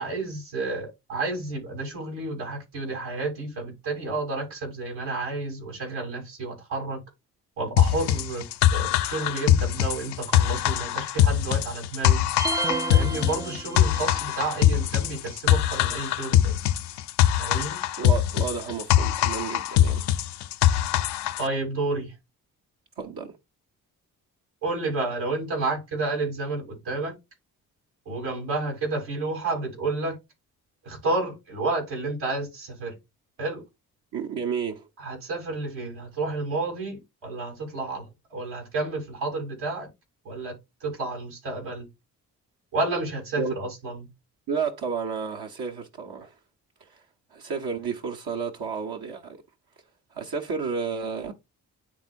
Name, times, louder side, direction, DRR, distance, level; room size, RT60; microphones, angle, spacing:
voice 1, 0.0-7.0 7.6-8.4 8.7-12.3 12.9-16.6 17.4-17.8 21.4-22.1 24.6-27.1 28.0-30.2 30.8-32.9 33.4-33.6 35.0-38.0 38.3-39.9 40.2-40.5 40.8-41.9 42.7-44.1, right 3 dB, 80° right, 3.2 m, -30 dB
sound 1, 7.8-21.5, left 11 dB, 70° left, 0.6 m, -22 dB
sound 2, 12.4-14.2, right 3 dB, 10° right, 0.3 m, -30 dB
voice 2, 18.0-20.0 23.0-23.3 34.1-34.9 43.4-43.5 44.5-46.4 46.8-47.0 47.3-49.4 50.1-51.3, right 5 dB, 60° right, 1.1 m, -31 dB
10.0 x 3.7 x 2.5 m
hypercardioid pair, 40°, 42 cm